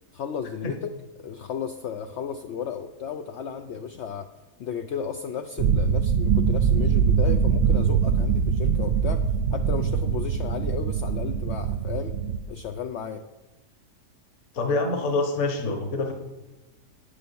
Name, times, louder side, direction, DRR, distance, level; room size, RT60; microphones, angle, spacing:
voice 1, 0.1-0.9 1.2-4.3 4.6-9.2 9.5-12.1 12.5-13.2, left 7 dB, 70° left, 6 dB, 0.6 m, -34 dB
sound 1, 5.6-12.4, right 6 dB, 65° right, 0.6 m, -23 dB
voice 2, 14.5-16.1, left 3 dB, 50° left, 4 dB, 1.5 m, -26 dB
9.2 x 6.8 x 7.0 m, 1.1 s
omnidirectional pair, 1.8 m